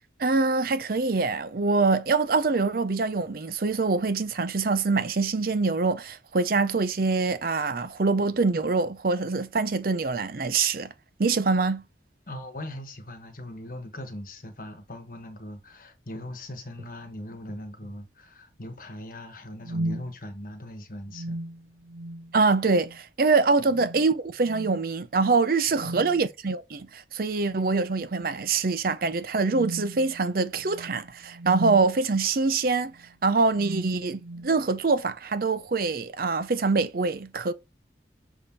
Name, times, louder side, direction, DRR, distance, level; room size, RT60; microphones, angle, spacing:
voice 1, 0.2-10.9 11.2-11.8 22.3-32.9 33.2-37.5, right 4 dB, 50° right, 0.6 m, -24 dB
voice 2, 12.3-21.4 23.6-23.8 25.8-26.0, left 1 dB, 50° left, 1.2 m, -40 dB
sound 1, 16.2-16.3 16.8-17.0 17.5-18.0 19.6-20.1 21.1-22.4 22.7-23.0 23.7-24.1 24.4-24.8 25.7-26.3 27.4-27.9 28.3-28.5 29.4-31.9 32.8-33.1 33.5-34.6, right 1 dB, 85° right, 0.9 m, -37 dB
6.8 x 3.6 x 4.2 m
head